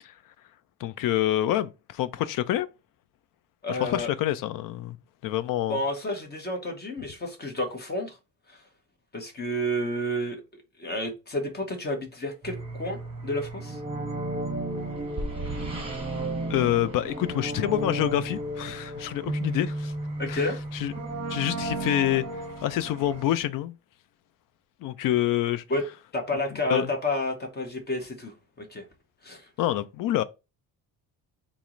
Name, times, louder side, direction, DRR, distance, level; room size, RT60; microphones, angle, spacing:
voice 1, 0.8-2.7 3.7-5.0 5.2-5.8 16.5-19.9 20.3-20.9 21.3-22.3 22.6-23.7 24.8-25.6 26.7-26.9 29.6-30.2, left 13 dB, 60° left, 0.5 m, -27 dB
voice 2, 3.6-4.1 5.7-8.2 8.5-8.6 9.1-10.4 10.8-13.8 20.2-20.6 25.7-25.8 26.1-28.8 29.2-29.5, left 1 dB, 25° left, 0.8 m, -30 dB
sound 1, 12.4-23.2, right 2 dB, 15° right, 1.2 m, -33 dB
4.2 x 2.0 x 3.7 m
cardioid pair, 120°, 37 cm